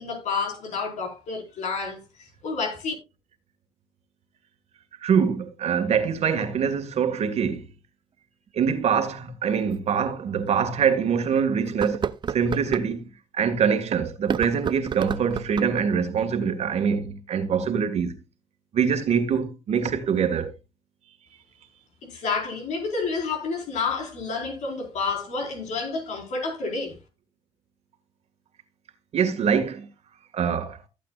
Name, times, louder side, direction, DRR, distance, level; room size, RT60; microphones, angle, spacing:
voice 1, 0.0-2.9 22.0-27.0, left 4 dB, 65° left, 4.7 m, -29 dB
voice 2, 5.0-7.7 8.5-13.1 13.3-18.2 18.7-20.5 29.1-29.9 30.3-30.8, right 7 dB, 55° right, 1.9 m, -24 dB
sound 1, 8.5-8.6 9.7-9.8 10.4-10.5 11.7-12.9 14.2-15.8, right 7 dB, 35° right, 0.6 m, -31 dB
15.0 x 8.4 x 2.4 m
supercardioid pair, 80°, 13 cm